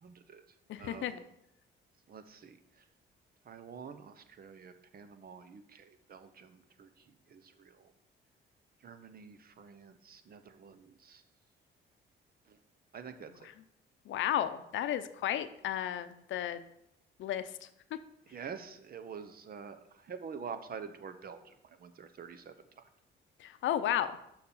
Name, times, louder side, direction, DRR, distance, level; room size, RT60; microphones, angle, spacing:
voice 1, 0.0-0.4 0.8-1.3 2.1-2.6 3.5-7.9 8.8-11.2 12.5-12.6 12.9-13.5 18.3-22.8, right 6 dB, 50° right, 10 dB, 0.8 m, -47 dB
voice 2, 0.7-1.1 14.1-16.6 17.2-17.5 23.4-24.1, left 11 dB, 75° left, 12 dB, 0.6 m, -33 dB
6.6 x 5.9 x 5.5 m, 0.80 s
cardioid pair, 90°, 20 cm